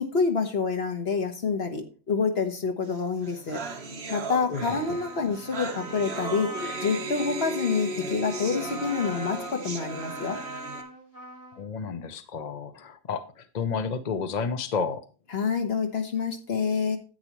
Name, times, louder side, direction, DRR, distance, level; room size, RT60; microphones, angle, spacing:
voice 1, 0.0-3.6 4.1-6.5 6.8-10.4 15.3-17.0, left 5 dB, 70° left, 4 dB, 1.5 m, -27 dB
sound 1, 2.9-3.0 3.2-10.8, right 2 dB, 65° right, 1.4 m, -36 dB
voice 2, 4.5-5.0 11.5-15.0, left 5 dB, 45° left, 9 dB, 0.7 m, -31 dB
Trumpet, 4.5-11.6, right 1 dB, 10° left, 5.5 m, -41 dB
10.0 x 8.7 x 3.0 m, 0.35 s
omnidirectional pair, 1.1 m